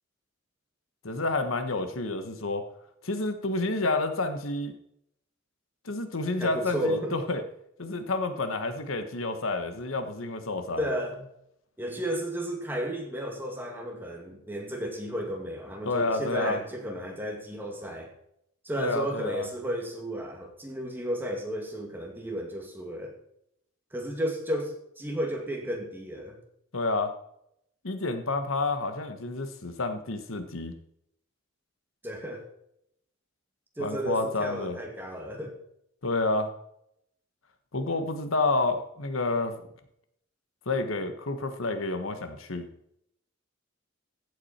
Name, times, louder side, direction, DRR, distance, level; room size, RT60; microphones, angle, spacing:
voice 1, 1.0-2.6 3.0-4.7 5.8-7.4 7.8-10.8 15.8-16.6 18.8-19.5 26.7-27.1 27.8-30.7 33.8-34.8 36.0-36.5 37.7-39.5 40.6-42.6, left 3 dB, 80° left, 8 dB, 1.3 m, -29 dB
voice 2, 6.4-7.2 10.8-11.2 11.8-18.1 18.6-23.1 23.9-26.4 32.0-32.4 33.8-35.6, equal, 10° right, 1 dB, 2.3 m, -33 dB
15.5 x 8.6 x 4.4 m, 0.75 s
head